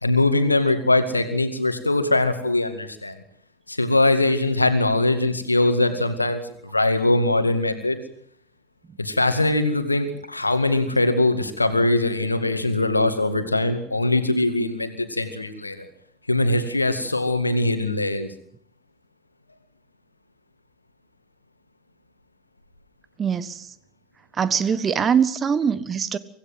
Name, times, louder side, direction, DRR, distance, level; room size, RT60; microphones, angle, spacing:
voice 1, 0.0-3.2 3.7-8.0 9.0-15.9 16.3-18.3, left 2 dB, 90° left, 9 dB, 2.0 m, -22 dB
voice 2, 23.2-23.7 24.4-26.2, right 7 dB, 25° right, 14 dB, 1.4 m, -22 dB
25.0 x 16.0 x 7.7 m, 0.70 s
figure-of-eight pair, 80°, 0 cm